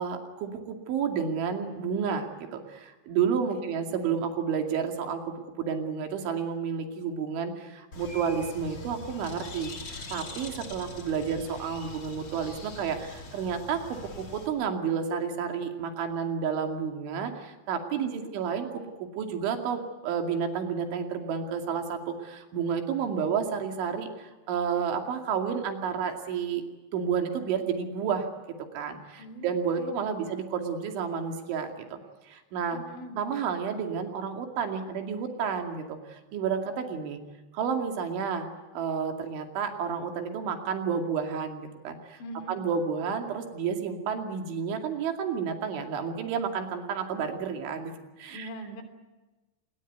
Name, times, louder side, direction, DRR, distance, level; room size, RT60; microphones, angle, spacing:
voice 1, 0.0-26.6 26.9-28.3 28.7-32.0 32.2-32.8 33.2-37.2 37.5-38.5 38.7-42.2 42.5-47.9 48.2-48.5, right 6 dB, 90° right, 4 dB, 4.9 m, -31 dB
Bird, 7.9-14.5, left 3 dB, 30° left, 2.4 m, -43 dB
voice 2, 18.0-18.3 29.2-30.3 32.7-33.2 42.2-42.6 48.3-48.8, right 1 dB, 85° left, 7 dB, 5.4 m, -43 dB
27.5 x 21.0 x 9.4 m, 1.2 s
omnidirectional pair, 5.2 m